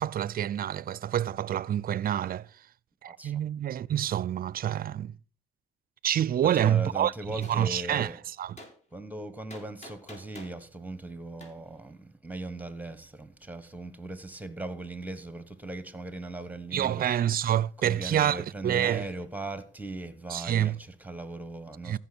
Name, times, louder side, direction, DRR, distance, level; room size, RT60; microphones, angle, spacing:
voice 1, 0.0-2.5 3.0-5.2 6.0-8.1 8.4-8.6 16.7-19.1 20.3-20.8 21.8-22.0, right 11 dB, 50° right, 0.4 m, -27 dB
voice 2, 3.1-3.4 6.5-8.2 8.9-17.1 17.8-22.0, right 2 dB, 10° right, 1.3 m, -39 dB
Gunshot gunfire, 7.4-7.6 8.6-8.7 9.5-10.6 11.4-11.5, left 1 dB, 35° left, 3.3 m, -46 dB
14.5 x 5.9 x 6.1 m
cardioid pair, 90°, 20 cm